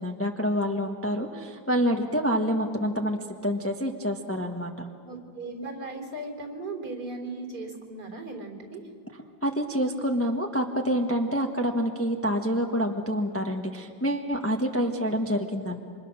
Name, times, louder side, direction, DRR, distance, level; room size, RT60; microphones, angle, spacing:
voice 1, 0.0-4.9 9.4-15.8, equal, 10° left, 2 dB, 1.1 m, -27 dB
voice 2, 5.0-8.8 14.7-14.9, right 2 dB, 60° right, 3 dB, 4.5 m, -37 dB
28.0 x 26.0 x 6.3 m, 2.1 s
omnidirectional pair, 2.0 m